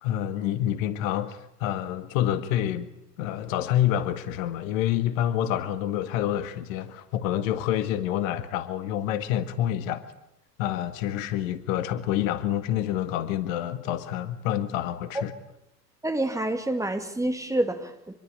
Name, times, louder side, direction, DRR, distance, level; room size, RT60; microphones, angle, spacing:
voice 1, 0.0-2.9 3.2-10.0 10.6-15.3, left 11 dB, 55° left, 2.0 m, -27 dB
voice 2, 16.0-18.2, right 1 dB, 5° right, 2.6 m, -28 dB
26.5 x 22.0 x 8.9 m
figure-of-eight pair, 85°, 48 cm